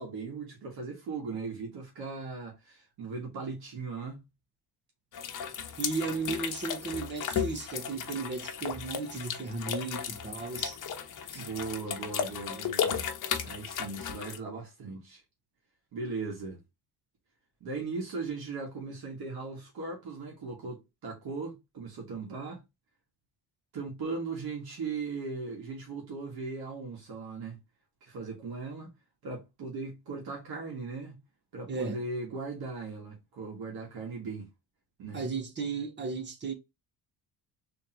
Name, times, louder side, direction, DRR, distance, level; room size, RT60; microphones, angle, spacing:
voice 1, 0.0-4.2 11.3-13.1 13.4-15.2 15.9-16.6 17.6-22.6 23.7-27.6 28.0-28.9 29.2-31.2 31.5-34.5 35.0-35.2, right 4 dB, 70° right, 1.7 m, -38 dB
sound 1, 5.1-14.4, left 8 dB, 55° left, 0.9 m, -35 dB
voice 2, 5.8-10.8 11.3-11.4 31.7-32.0 35.1-36.5, right 4 dB, 30° right, 0.8 m, -35 dB
3.7 x 3.3 x 2.8 m
cardioid pair, 170°, 39 cm